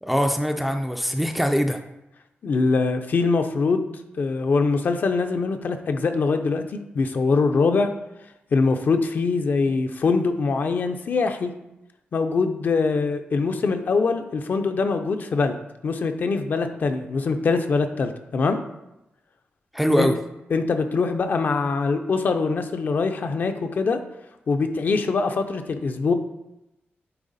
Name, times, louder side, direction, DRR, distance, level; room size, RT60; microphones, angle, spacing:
voice 1, 0.0-1.8 19.7-20.2, equal, ahead, 5 dB, 0.4 m, -22 dB
voice 2, 2.4-3.9 4.2-7.9 8.5-11.5 12.1-15.6 15.8-18.6 20.0-20.1 20.5-24.0 24.5-26.1, left 4 dB, 50° left, 7 dB, 0.5 m, -23 dB
8.9 x 3.4 x 4.0 m, 0.90 s
wide cardioid pair, 165°, 4 cm